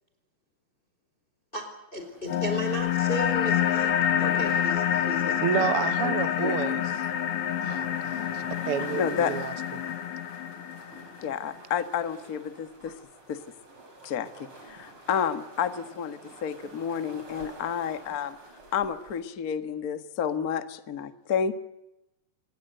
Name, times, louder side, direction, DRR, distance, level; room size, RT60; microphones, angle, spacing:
voice 1, 1.5-5.7 6.0-6.1, equal, 15° left, 6 dB, 4.4 m, -35 dB
sound 1, 1.9-19.2, right 2 dB, 35° right, 6.0 m, -50 dB
sound 2, 2.3-11.3, left 9 dB, 60° left, 1.5 m, -27 dB
voice 2, 5.4-7.1 7.6-9.8, right 9 dB, 55° right, 12 dB, 1.7 m, -30 dB
voice 3, 9.0-9.3 11.2-12.9 13.3-13.4 14.0-18.4 18.7-21.5, left 7 dB, 45° left, 10 dB, 1.2 m, -30 dB
26.5 x 21.5 x 8.0 m, 0.90 s
omnidirectional pair, 3.9 m